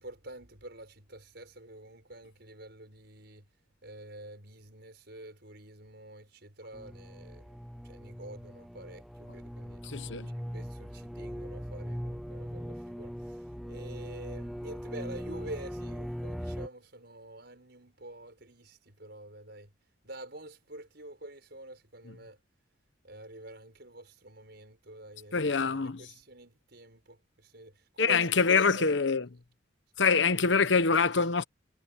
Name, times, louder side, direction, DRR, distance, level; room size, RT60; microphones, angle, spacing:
voice 1, 0.0-3.5 3.8-9.8 10.3-19.7 20.0-22.4 23.0-29.0, right 1 dB, 55° right, 6.8 m, -47 dB
sound 1, 6.7-16.7, equal, ahead, 0.3 m, -40 dB
voice 2, 9.8-10.3 25.3-26.0 28.0-29.3 30.0-31.4, left 5 dB, 65° left, 1.1 m, -25 dB
head